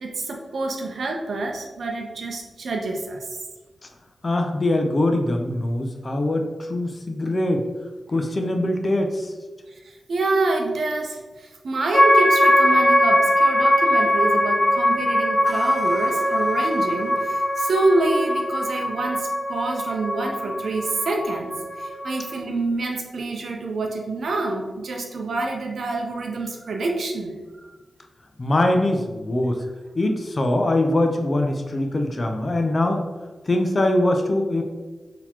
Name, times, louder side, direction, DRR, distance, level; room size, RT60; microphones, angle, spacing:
voice 1, 0.0-3.3 10.1-27.4, right 2 dB, 75° right, 1 dB, 0.6 m, -27 dB
voice 2, 4.2-7.7 8.1-9.3 28.4-29.6 30.0-33.0 33.5-34.6, left 1 dB, 45° left, 4 dB, 0.6 m, -22 dB
sound 1, 11.9-22.4, left 1 dB, 25° left, 1.2 m, -21 dB
3.9 x 2.9 x 2.9 m, 1.3 s
cardioid pair, 45°, 0 cm